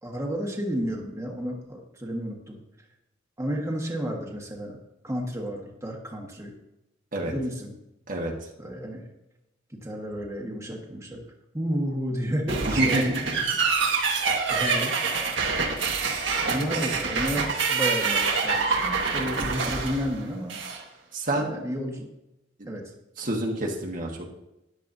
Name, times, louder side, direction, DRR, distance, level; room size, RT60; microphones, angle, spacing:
voice 1, 0.0-2.6 3.4-4.8 5.0-6.5 7.3-7.7 8.6-9.1 9.7-11.2 11.5-13.3 14.1-14.9 16.4-20.6 21.3-22.1 22.7-22.8, equal, 15° right, -1 dB, 1.4 m, -31 dB
voice 2, 8.1-8.5 12.6-13.4 21.1-21.6 22.6-22.8 23.2-24.3, right 1 dB, 50° right, 0 dB, 1.4 m, -28 dB
sound 1, 12.5-20.8, right 4 dB, 85° right, 1.6 m, -26 dB
13.0 x 10.5 x 2.7 m, 0.91 s
head